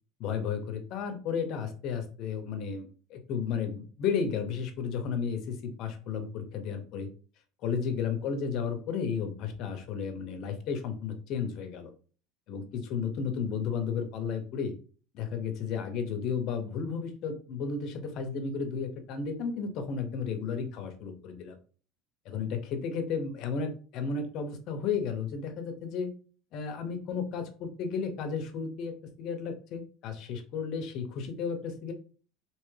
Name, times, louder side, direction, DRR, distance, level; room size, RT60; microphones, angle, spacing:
voice 1, 0.2-7.1 7.6-11.9 12.5-14.7 15.1-21.6 22.3-26.1 26.5-31.9, left 6 dB, 45° left, 7 dB, 0.7 m, -33 dB
3.3 x 2.9 x 3.2 m, 0.40 s
cardioid pair, 150°, 0 cm